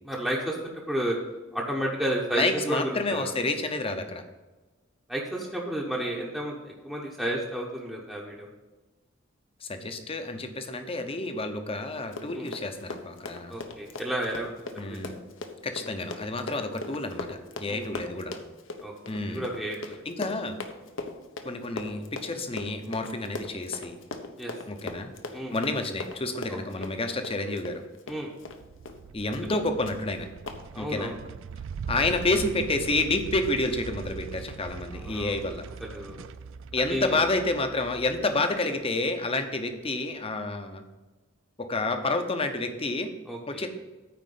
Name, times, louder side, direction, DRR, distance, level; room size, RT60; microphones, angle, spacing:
voice 1, 0.0-1.2 1.5-3.3 5.1-8.5 12.3-12.5 13.5-15.1 17.7-17.9 18.8-18.9 19.3-20.0 24.4-24.5 25.3-25.5 26.5-26.6 28.1-28.3 29.5-29.6 30.7-31.2 34.9-35.4 35.8-36.3 36.9-37.2 43.3-43.6, right 1 dB, ahead, -3 dB, 1.0 m, -32 dB
voice 2, 2.3-4.2 9.6-13.6 14.8-15.2 15.6-18.4 19.1-19.5 20.0-20.6 21.4-24.0 24.7-25.1 25.5-27.8 29.1-30.3 30.8-31.2 31.9-35.6 36.7-40.8 41.6-43.1 43.5-43.7, left 2 dB, 30° left, 7 dB, 0.8 m, -29 dB
Run, 12.0-28.6 28.9-29.0 29.3-29.6 29.9-30.0 30.5-30.6, left 3 dB, 65° left, 0.9 m, -39 dB
sound 1, 28.4-39.0, right 6 dB, 70° right, 0.3 m, -42 dB
Piano, 33.1-38.3, right 3 dB, 25° right, 0.6 m, -46 dB
9.5 x 4.4 x 7.6 m, 1.2 s
head